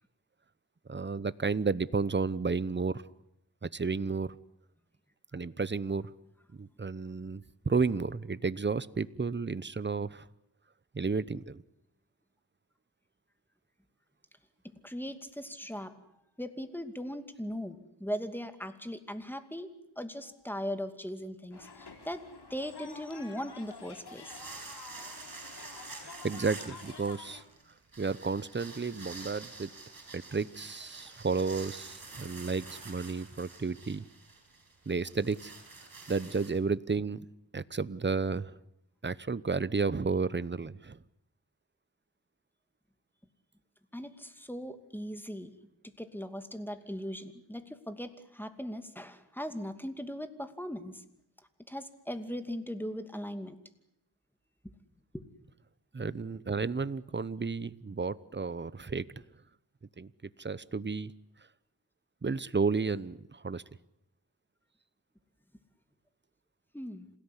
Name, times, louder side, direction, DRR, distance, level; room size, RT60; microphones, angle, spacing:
voice 1, 0.9-3.0 3.6-4.4 5.3-6.1 6.5-10.2 10.9-11.6 26.2-27.4 28.0-29.7 30.1-34.1 34.9-35.5 36.1-37.2 37.5-38.5 39.0-41.0 55.9-59.1 60.0-60.1 60.4-61.1 62.2-63.6, right 4 dB, 25° right, 17 dB, 0.9 m, -32 dB
voice 2, 14.6-15.9 16.4-24.4 43.9-45.5 45.8-51.0 51.7-53.6 55.1-55.2 66.7-67.1, equal, 5° left, 9 dB, 2.5 m, -39 dB
sound 1, 21.5-27.4, left 4 dB, 60° left, 3.1 m, -49 dB
sound 2, 23.9-36.5, right 3 dB, 50° right, 8.0 m, -48 dB
27.0 x 17.5 x 9.9 m, 0.80 s
cardioid pair, 70°, 43 cm